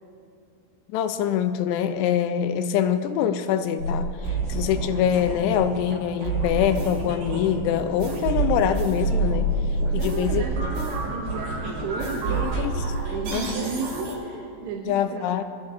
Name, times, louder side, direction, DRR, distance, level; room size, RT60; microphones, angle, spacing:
voice 1, 0.9-4.1 4.5-9.5 9.9-10.4 12.4-12.9 13.3-13.5 14.9-15.4, left 9 dB, 85° left, 9 dB, 2.8 m, -24 dB
sound 1, 3.8-14.1, right 3 dB, 60° right, 4.0 m, -28 dB
voice 2, 9.9-12.5 13.0-15.3, right 5 dB, 80° right, -1 dB, 3.0 m, -33 dB
20.0 x 12.5 x 2.7 m, 2.6 s
omnidirectional pair, 4.8 m